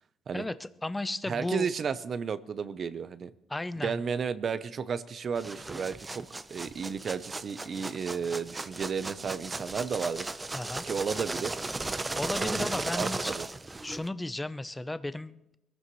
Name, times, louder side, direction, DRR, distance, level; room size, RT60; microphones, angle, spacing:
voice 1, 0.3-1.7 3.5-4.0 10.5-10.9 12.1-13.3 13.8-15.4, left 2 dB, 15° left, 13 dB, 0.7 m, -34 dB
voice 2, 1.2-3.3 3.8-6.2 6.5-10.3 10.8-11.5 12.4-12.7 12.9-13.5, right 6 dB, 50° right, 13 dB, 0.8 m, -33 dB
sound 1, 5.3-14.1, right 2 dB, 20° right, 0.7 m, -36 dB
22.5 x 15.0 x 3.2 m, 0.89 s
cardioid pair, 90°, 0 cm